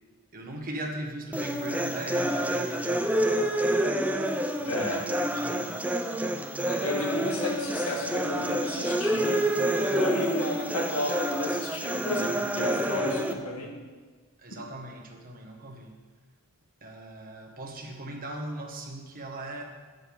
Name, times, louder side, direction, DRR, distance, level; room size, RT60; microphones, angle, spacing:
voice 1, 0.3-3.7 4.6-5.8 14.4-16.0 16.8-19.6, right 1 dB, 40° right, 2 dB, 1.3 m, -39 dB
sound 1, 1.3-13.3, right 1 dB, 5° right, 0.5 m, -28 dB
voice 2, 4.6-5.1 6.6-13.8, left 1 dB, 70° left, 0 dB, 1.8 m, -33 dB
9.8 x 6.5 x 7.1 m, 1.4 s
head